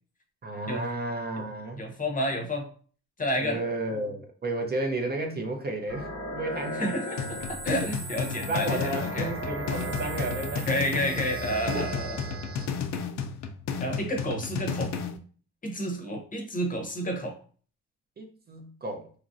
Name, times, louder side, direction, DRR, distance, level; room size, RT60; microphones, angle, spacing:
voice 1, 0.4-1.8 3.4-6.9 8.5-10.7 11.7-11.9 16.4-16.5 18.2-19.1, right 2 dB, 35° right, 2 dB, 0.6 m, -32 dB
voice 2, 1.8-2.7 3.2-3.6 6.7-9.3 10.7-12.2 13.8-14.9 15.6-17.4, equal, 25° left, 2 dB, 0.7 m, -30 dB
sound 1, 5.9-12.7, right 1 dB, 50° right, 1.0 m, -36 dB
sound 2, 7.2-15.2, left 6 dB, 65° left, 0.4 m, -33 dB
3.0 x 2.4 x 2.5 m, 0.42 s
cardioid pair, 90°, 30 cm